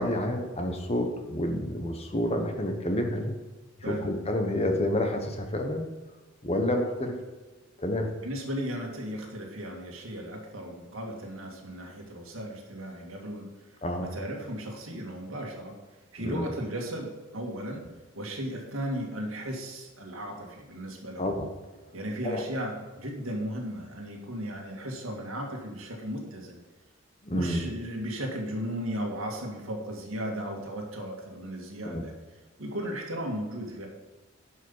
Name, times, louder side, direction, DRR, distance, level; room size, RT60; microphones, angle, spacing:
voice 1, 0.0-3.3 3.8-5.9 6.4-7.1 7.8-8.1 13.8-14.1 16.2-16.5 21.2-21.5 22.2-22.4 27.2-27.6 31.8-32.0, left 1 dB, 30° left, 4 dB, 1.2 m, -29 dB
voice 2, 8.2-13.5 14.0-15.8 16.1-17.9 18.1-21.3 21.9-26.6 27.3-32.1 32.6-33.9, equal, 80° right, 0 dB, 2.1 m, -36 dB
11.0 x 5.7 x 5.7 m, 1.2 s
head